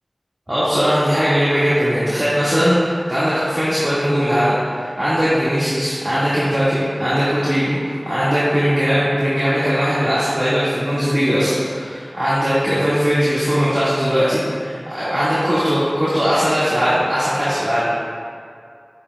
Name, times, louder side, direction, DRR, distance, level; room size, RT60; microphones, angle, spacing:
voice 1, 0.5-17.8, equal, 40° right, -12 dB, 2.2 m, -19 dB
10.0 x 8.8 x 2.4 m, 2.2 s
wide cardioid pair, 45°, 0 cm